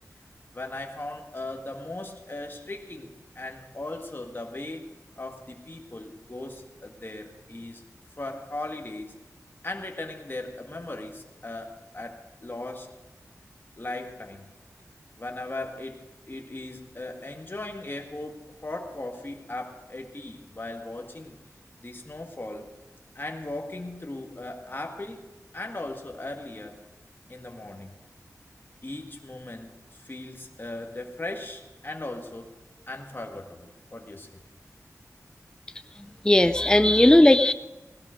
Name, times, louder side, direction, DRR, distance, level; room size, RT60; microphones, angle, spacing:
voice 1, 0.5-4.9 5.2-7.8 8.2-9.1 9.6-12.9 13.8-14.5 15.2-21.4 21.8-22.7 23.2-25.2 25.5-26.8 27.3-27.9 28.8-32.5 32.9-34.3, left 2 dB, 35° left, 2 dB, 1.8 m, -38 dB
voice 2, 36.0-37.5, left 1 dB, 15° left, 11 dB, 0.5 m, -18 dB
17.5 x 12.5 x 5.1 m, 1.1 s
wide cardioid pair, 50°, 6 cm